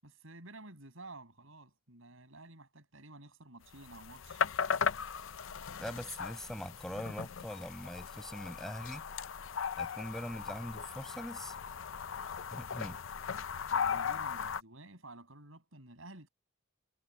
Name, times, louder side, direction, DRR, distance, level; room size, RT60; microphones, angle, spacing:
voice 1, 0.0-4.4 13.7-16.3, right 2 dB, 75° right, 7.3 m, -52 dB
sound 1, 3.8-14.6, left 6 dB, 70° left, 0.6 m, -37 dB
voice 2, 5.8-9.0 9.8-11.5 12.5-13.0, equal, ahead, 5.9 m, -42 dB
head